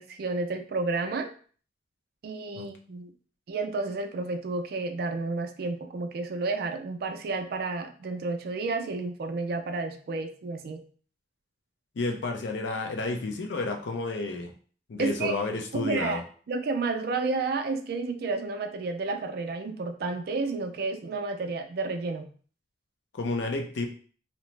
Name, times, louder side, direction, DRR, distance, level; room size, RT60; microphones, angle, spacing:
voice 1, 0.0-1.3 2.2-3.1 3.5-10.9 15.0-15.3 15.7-16.2 16.5-22.3, right 3 dB, 55° right, 7 dB, 0.3 m, -31 dB
voice 2, 12.0-14.5 14.9-16.2 23.1-23.9, left 3 dB, 80° left, 4 dB, 0.5 m, -31 dB
2.7 x 2.0 x 3.1 m, 0.43 s
head